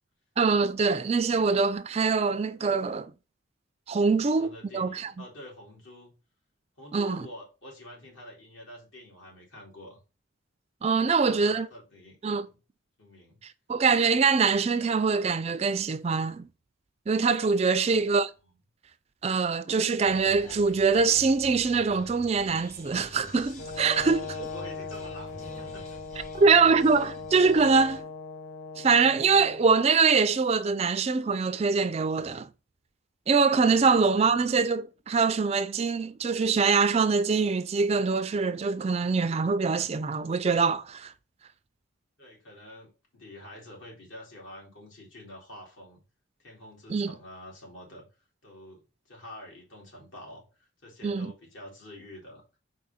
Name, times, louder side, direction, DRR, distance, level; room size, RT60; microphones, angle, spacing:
voice 1, 0.4-3.1 3.9-5.1 6.9-7.2 10.8-11.7 12.2-12.5 13.7-16.5 17.1-18.3 19.2-24.5 26.3-28.0 28.8-32.5 33.3-41.1 46.9-47.1 51.0-51.3, right 4 dB, 30° right, 0.3 m, -24 dB
voice 2, 4.0-6.1 6.8-10.0 11.0-12.2 12.5-12.6 13.0-13.4 17.6-18.1 24.0-26.0 27.2-27.3 33.8-34.3 42.2-46.0 46.4-48.1 48.4-48.8 49.1-52.4, left 1 dB, 70° left, 2.8 m, -47 dB
sound 1, 20.0-28.0, left 1 dB, 35° left, 1.5 m, -47 dB
Brass instrument, 23.6-29.7, left 4 dB, 50° left, 0.8 m, -39 dB
4.8 x 4.3 x 5.5 m
head